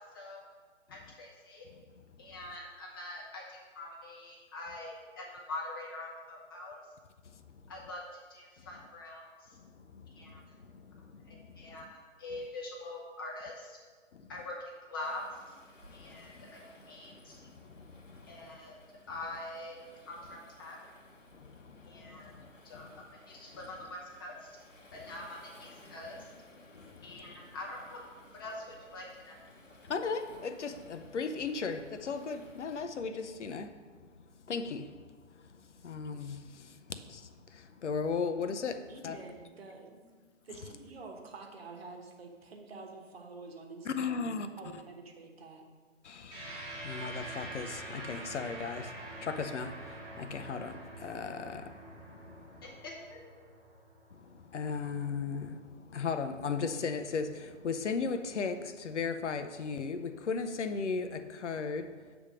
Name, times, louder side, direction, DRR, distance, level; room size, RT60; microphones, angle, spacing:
voice 1, 0.9-1.6 2.2-6.8 7.7-9.6 10.1-10.4 11.3-13.8 14.3-14.6 14.9-15.2 15.9-17.4 18.3-18.8 19.1-20.8 21.8-22.3 22.6-24.6 24.9-26.2 27.0-28.0 28.3-29.4 52.6-53.2, left 2 dB, 20° left, 0.7 m, -44 dB
voice 2, 7.2-7.7 8.6-8.7 9.5-11.9 14.1-14.3 15.9-16.4 17.1-18.6 21.3-22.5 22.7-23.0 24.9-25.2 26.8-27.4 29.8-39.2 43.8-44.5 44.7-44.8 46.0-52.7 54.1-62.1, left 5 dB, 70° left, 0.6 m, -38 dB
Waves surf, 15.0-32.9, left 1 dB, 90° left, 1.3 m, -57 dB
voice 3, 38.9-40.1 40.4-45.6, right 3 dB, 55° right, 1.1 m, -48 dB
sound 1, 46.3-55.0, right 2 dB, 15° right, 1.1 m, -46 dB
7.1 x 3.4 x 6.1 m
figure-of-eight pair, 145°, 37 cm